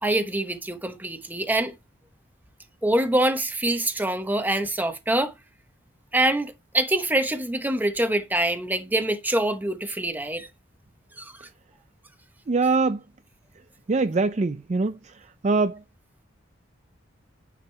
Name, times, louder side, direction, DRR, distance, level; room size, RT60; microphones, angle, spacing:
voice 1, 0.0-1.7 2.8-5.3 6.1-10.5 11.2-11.3, right 1 dB, 10° right, 1.0 m, -25 dB
voice 2, 12.5-13.0 13.9-15.0 15.4-15.8, right 3 dB, 35° right, 0.4 m, -22 dB
9.6 x 5.0 x 4.5 m
head